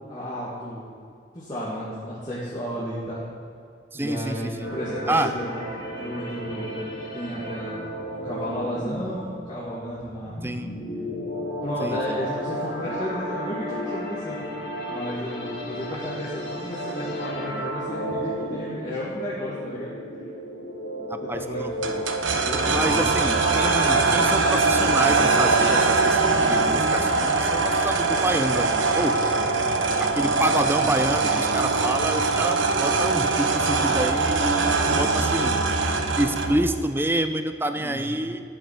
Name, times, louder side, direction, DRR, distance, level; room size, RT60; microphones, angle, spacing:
voice 1, 0.1-0.8 1.3-3.2 3.9-5.5 5.9-6.8 7.1-10.4 11.6-14.4 14.9-19.9 21.3-21.6 22.4-23.1 37.8-38.1, equal, 20° left, -9 dB, 2.5 m, -33 dB
voice 2, 3.9-4.7 5.1-5.3 10.4-10.7 11.8-12.2 21.1-22.0 22.7-29.2 30.0-35.6 36.2-38.4, right 1 dB, 10° right, 9 dB, 0.6 m, -28 dB
sound 1, 4.6-23.9, equal, 75° left, 4.3 m, -33 dB
sound 2, 21.8-36.7, right 3 dB, 90° right, 1.2 m, -22 dB
12.5 x 7.4 x 9.6 m, 2.4 s
head